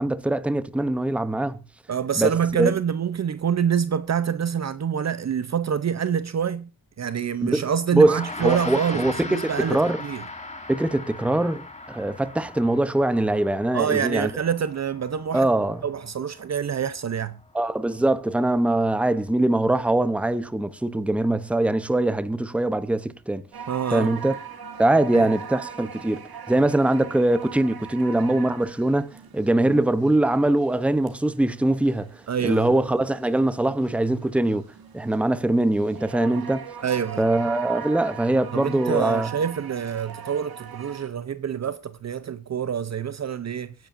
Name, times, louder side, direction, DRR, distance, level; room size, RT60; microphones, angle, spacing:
voice 1, 0.0-1.6 2.2-2.7 7.4-7.6 7.9-10.0 10.7-14.3 15.3-15.8 17.5-23.4 23.9-24.4 24.8-26.2 26.5-34.6 34.9-36.7 37.2-39.3, right 1 dB, 5° right, 0.8 m, -22 dB
voice 2, 1.9-6.7 7.0-10.2 13.7-15.5 15.8-17.4 23.7-24.1 25.1-25.3 32.3-32.7 36.8-37.2 38.5-43.7, right 8 dB, 45° right, 0.7 m, -26 dB
Gong, 7.9-17.6, left 2 dB, 20° left, 3.2 m, -39 dB
sound 1, 23.5-41.1, right 7 dB, 80° right, 2.8 m, -40 dB
24.0 x 10.5 x 2.6 m
wide cardioid pair, 135°, 36 cm